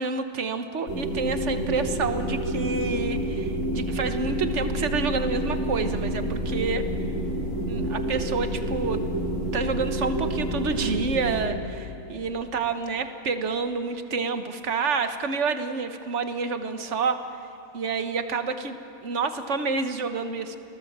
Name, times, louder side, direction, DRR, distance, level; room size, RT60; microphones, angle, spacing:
voice 1, 0.0-6.9 7.7-9.0 9.5-17.2 17.7-18.8 19.0-20.6, right 4 dB, 55° right, 8 dB, 1.5 m, -28 dB
sound 1, 0.9-11.4, right 1 dB, 60° left, 3.9 m, -28 dB
27.5 x 19.0 x 7.4 m, 3.0 s
omnidirectional pair, 1.5 m